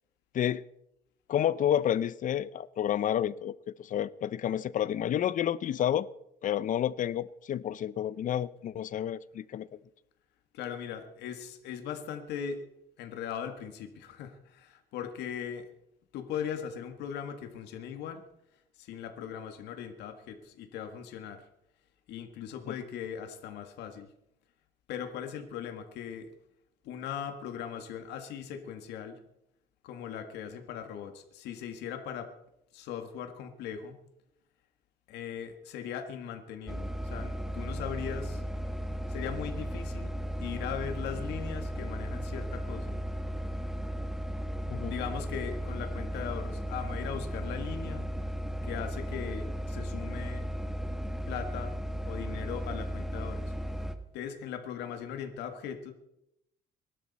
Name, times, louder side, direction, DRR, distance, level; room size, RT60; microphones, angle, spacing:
voice 1, 1.3-6.1 6.4-9.7 22.7-22.8 44.7-44.9, left 10 dB, 50° left, 18 dB, 0.7 m, -30 dB
voice 2, 10.5-12.6 13.0-15.7 16.1-18.2 18.8-21.5 22.1-24.1 24.9-26.3 26.8-29.2 29.8-32.3 32.7-34.0 35.1-38.4 39.1-40.1 40.4-43.0 44.9-48.1 48.6-50.5 51.3-51.7 52.0-53.5 54.1-55.9, left 8 dB, 85° left, 6 dB, 1.8 m, -39 dB
sound 1, 36.7-54.0, equal, ahead, 1.4 m, -35 dB
23.5 x 12.0 x 4.2 m, 0.81 s
cardioid pair, 110°, 17 cm